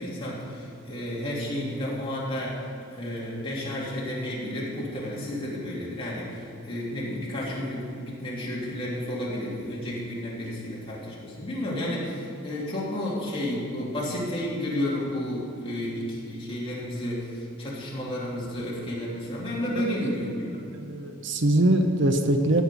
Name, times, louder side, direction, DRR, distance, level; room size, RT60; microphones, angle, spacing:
voice 1, 0.0-20.6, left 1 dB, 25° left, -6 dB, 3.1 m, -32 dB
voice 2, 20.7-22.6, right 1 dB, 60° right, 6 dB, 0.8 m, -23 dB
14.0 x 5.6 x 8.5 m, 2.4 s
head